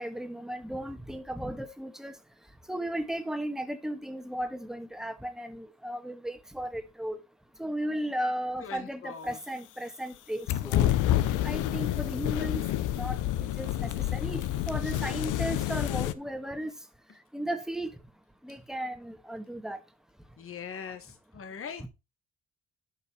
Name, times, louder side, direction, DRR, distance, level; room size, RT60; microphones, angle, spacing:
voice 1, 0.0-2.1 2.7-7.2 7.6-10.9 11.4-12.6 12.9-13.2 13.6-16.7 17.3-17.9 18.4-19.8, right 1 dB, ahead, 1.6 m, -35 dB
voice 2, 8.6-9.4 20.4-21.9, left 6 dB, 45° left, 1.4 m, -41 dB
sound 1, 10.5-16.1, left 13 dB, 90° left, 0.8 m, -28 dB
12.0 x 5.4 x 4.4 m
cardioid pair, 90°, 30 cm